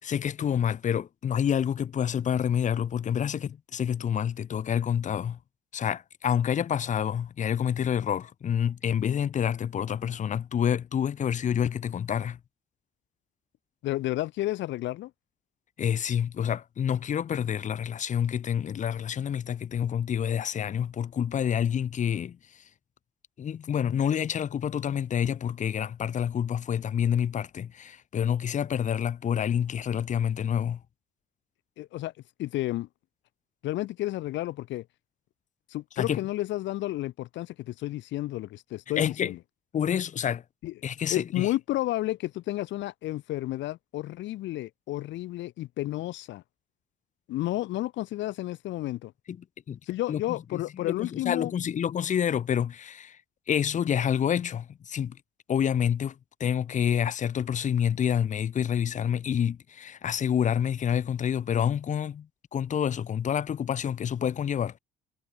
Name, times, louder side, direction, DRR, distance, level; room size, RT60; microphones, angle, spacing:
voice 1, 0.0-5.4 5.7-12.4 15.8-22.4 23.4-30.8 36.0-36.2 39.0-39.3 39.7-40.4 40.8-41.5 49.3-49.4 49.7-49.8 50.1-50.2 50.5-53.2 53.5-55.2 55.5-56.1 56.4-62.3 62.5-64.8, left 8 dB, 40° left, 3.5 m, -28 dB
voice 2, 13.8-15.1 31.8-32.1 32.4-32.9 33.6-34.9 35.7-39.4 40.6-40.7 41.1-46.4 47.3-49.1 49.9-51.5, left 16 dB, 70° left, 2.2 m, -31 dB
cardioid pair, 150°, 20 cm